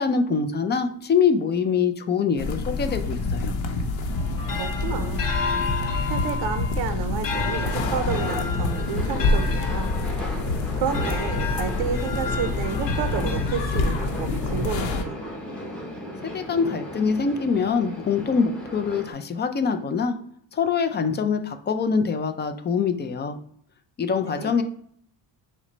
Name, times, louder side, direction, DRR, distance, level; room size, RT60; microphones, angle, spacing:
voice 1, 0.0-3.5 16.2-20.1 20.5-23.4 24.0-24.6, left 5 dB, 25° left, 7 dB, 0.3 m, -24 dB
sound 1, 2.4-15.0, left 3 dB, 85° left, 0.8 m, -27 dB
sound 2, 4.1-14.0, left 4 dB, 45° left, 1.0 m, -32 dB
voice 2, 4.6-5.3 6.1-10.0 10.7-15.2 24.2-24.5, right 7 dB, 60° right, 9 dB, 0.5 m, -31 dB
sound 3, 7.3-19.1, equal, ahead, 1.0 m, -36 dB
6.0 x 2.2 x 3.9 m, 0.62 s
cardioid pair, 135°, 44 cm